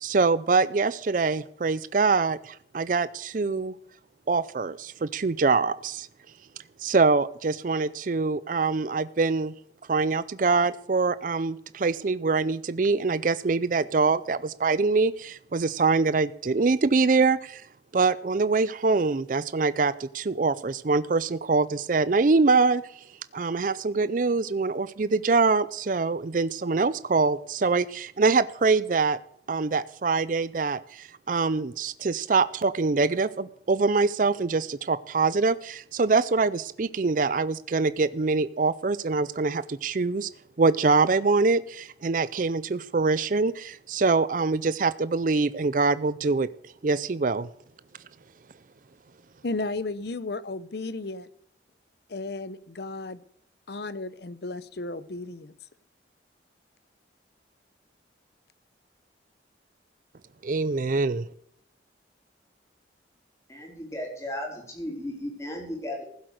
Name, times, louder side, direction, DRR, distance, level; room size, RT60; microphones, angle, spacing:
voice 1, 0.0-3.7 4.3-6.1 6.8-9.5 9.9-17.6 17.9-22.8 23.3-29.2 29.5-40.3 40.6-46.5 46.8-47.5 60.4-61.3, right 4 dB, 45° right, 16 dB, 0.4 m, -24 dB
voice 2, 49.4-51.3 52.1-53.2 53.7-55.5, left 2 dB, 60° left, 16 dB, 0.7 m, -34 dB
voice 3, 63.5-66.0, left 1 dB, 15° left, 0 dB, 3.9 m, -35 dB
15.5 x 7.9 x 6.5 m, 0.67 s
head